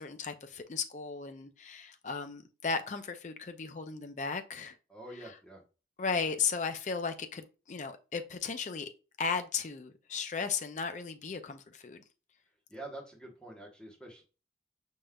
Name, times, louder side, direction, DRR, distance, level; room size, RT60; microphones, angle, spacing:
voice 1, 0.0-4.8 6.0-8.9 9.2-12.0, left 5 dB, 40° left, 0.4 m, -35 dB
voice 2, 4.9-5.6 12.7-14.2, right 1 dB, 5° left, 1.1 m, -46 dB
5.2 x 3.6 x 2.2 m
head